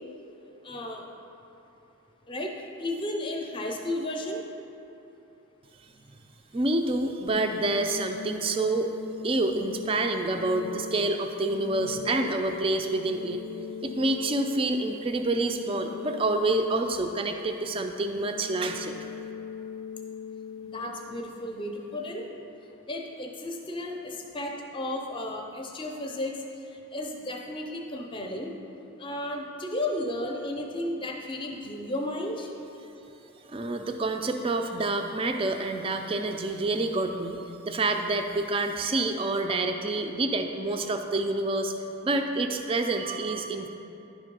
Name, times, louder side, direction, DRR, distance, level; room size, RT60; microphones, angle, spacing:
voice 1, 0.6-1.0 2.3-4.4 20.6-22.3 22.9-26.4 26.9-28.5 29.0-32.5, left 1 dB, 20° left, 1 dB, 0.6 m, -33 dB
voice 2, 6.5-8.9 9.2-13.4 13.8-19.0 33.5-41.7 42.0-43.7, right 2 dB, 25° right, 5 dB, 0.3 m, -28 dB
sound 1, 7.3-22.3, left 6 dB, 85° left, 0.4 m, -41 dB
10.5 x 3.6 x 5.3 m, 2.9 s
head